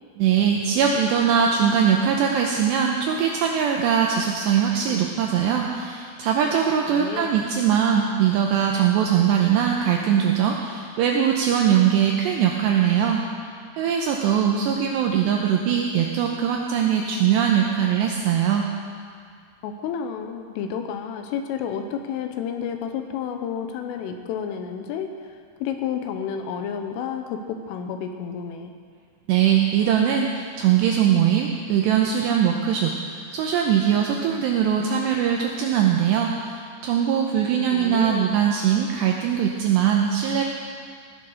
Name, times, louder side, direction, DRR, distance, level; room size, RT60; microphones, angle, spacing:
voice 1, 0.2-13.2 13.8-18.7 29.3-40.4, right 8 dB, 85° right, 1 dB, 2.5 m, -21 dB
voice 2, 6.9-7.4 19.6-28.7 37.7-38.3, left 7 dB, 80° left, 6 dB, 3.4 m, -31 dB
16.0 x 10.0 x 6.3 m, 2.2 s
omnidirectional pair, 5.9 m